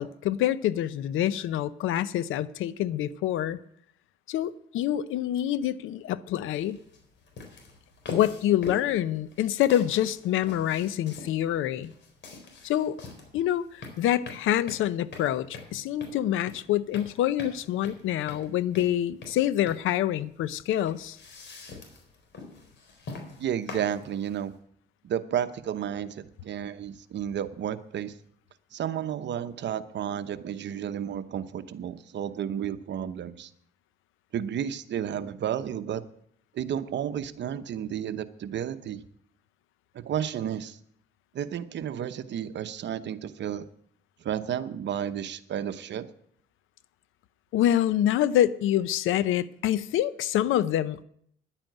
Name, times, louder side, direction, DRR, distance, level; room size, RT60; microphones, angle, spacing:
voice 1, 0.0-3.6 4.3-6.8 8.1-11.9 12.6-13.0 13.3-21.2 47.5-51.0, left 12 dB, 85° left, 0.7 m, -26 dB
sound 1, 6.5-24.6, left 4 dB, 65° left, 4.0 m, -44 dB
voice 2, 23.4-24.5 25.0-28.1 28.7-33.5 34.3-36.0 36.5-39.0 39.9-40.8 41.3-43.7 44.2-46.1, right 9 dB, 65° right, 1.0 m, -32 dB
11.0 x 8.9 x 9.2 m
cardioid pair, 90°, 20 cm